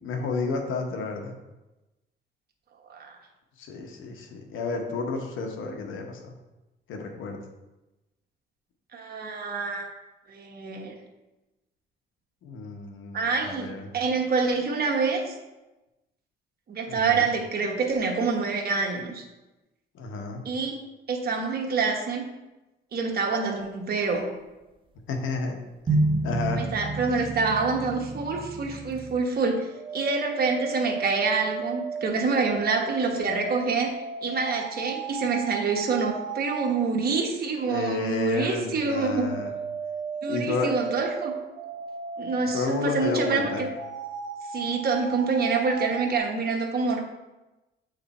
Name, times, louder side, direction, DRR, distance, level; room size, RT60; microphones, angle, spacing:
voice 1, 0.0-1.3 3.6-6.3 6.9-7.4 12.4-13.9 16.9-17.3 19.9-20.4 25.1-25.6 26.2-26.6 37.7-39.5 40.3-40.7 42.5-43.6, left 4 dB, 85° left, 3 dB, 1.0 m, -31 dB
voice 2, 8.9-9.9 10.3-10.9 13.1-15.4 16.7-19.2 20.4-20.8 21.1-22.2 22.9-24.3 26.6-33.9 34.2-39.3 40.2-41.3 42.2-43.7 44.5-47.0, right 4 dB, 50° right, 2 dB, 1.1 m, -26 dB
sound 1, 25.9-29.1, right 2 dB, 25° right, 0.6 m, -29 dB
sound 2, 29.5-36.8 38.8-46.1, right 5 dB, 85° right, 1.1 m, -35 dB
7.9 x 3.3 x 4.1 m, 1.0 s
cardioid pair, 90°, 20 cm